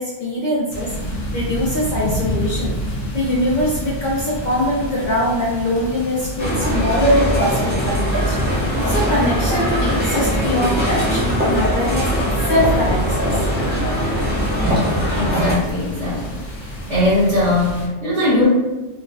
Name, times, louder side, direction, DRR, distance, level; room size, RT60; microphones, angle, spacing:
voice 1, 0.0-2.8 3.1-12.1 12.5-13.3, left 1 dB, 55° left, -6 dB, 0.6 m, -22 dB
sound 1, 0.7-17.9, equal, 85° left, 0.9 m, -29 dB
sound 2, 6.4-15.5, equal, 15° right, 0.5 m, -21 dB
voice 2, 15.1-16.3 16.9-18.5, left 1 dB, 45° right, -12 dB, 1.2 m, -19 dB
3.1 x 2.1 x 2.5 m, 1.1 s
omnidirectional pair, 1.1 m